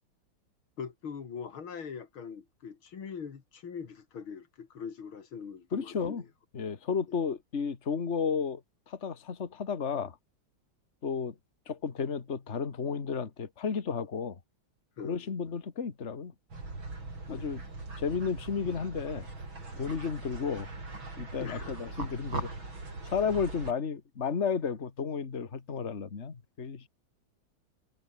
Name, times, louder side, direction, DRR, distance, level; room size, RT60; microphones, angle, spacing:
voice 1, 0.8-6.2 15.0-15.3 17.3-17.5 21.4-21.9, left 6 dB, 85° left, 3.2 m, -42 dB
voice 2, 5.7-6.2 6.5-8.6 8.9-10.2 11.0-11.3 11.7-14.4 15.0-16.3 17.3-17.6 18.0-19.3 19.7-20.7 21.2-22.7 23.1-26.9, left 6 dB, 35° left, 2.0 m, -33 dB
sound 1, 16.5-23.7, right 3 dB, 70° right, 7.0 m, -41 dB
omnidirectional pair, 2.2 m